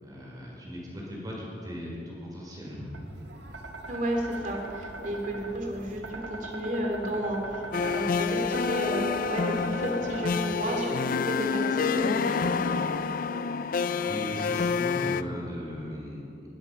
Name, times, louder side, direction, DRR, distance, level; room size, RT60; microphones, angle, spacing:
voice 1, 0.0-2.9 14.0-16.4, equal, 20° right, -4 dB, 5.0 m, -38 dB
sound 1, 2.9-10.7, right 2 dB, 85° right, 1.5 m, -41 dB
voice 2, 3.9-12.9, right 1 dB, 45° right, 1 dB, 2.9 m, -32 dB
sound 2, 7.7-15.2, left 5 dB, 50° left, 0.4 m, -28 dB
20.5 x 12.5 x 5.6 m, 2.8 s
head